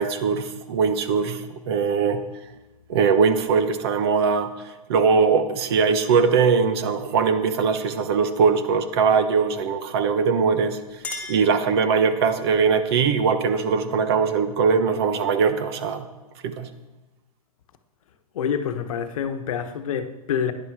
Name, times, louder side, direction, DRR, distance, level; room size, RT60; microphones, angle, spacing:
voice 1, 0.0-2.2 2.9-10.8 11.3-16.1 16.4-16.7, right 5 dB, 40° right, 1.2 m, -21 dB
Chink clink, 10.5-12.3, left 3 dB, 10° left, 2.0 m, -38 dB
voice 2, 18.3-20.5, left 8 dB, 60° left, 1.3 m, -27 dB
17.0 x 11.0 x 4.9 m
hypercardioid pair, 165°, 20 cm